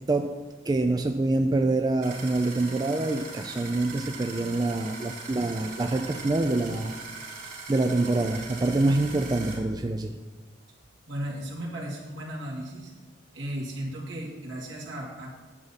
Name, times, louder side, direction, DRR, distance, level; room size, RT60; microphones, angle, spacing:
voice 1, 0.7-6.9 7.7-10.1, right 2 dB, 20° right, 6 dB, 0.4 m, -26 dB
sound 1, 2.0-9.6, right 4 dB, 50° right, 2.9 m, -41 dB
voice 2, 11.1-12.9 13.3-15.3, right 1 dB, 75° right, -3 dB, 2.2 m, -35 dB
9.7 x 7.1 x 4.1 m, 1.4 s
head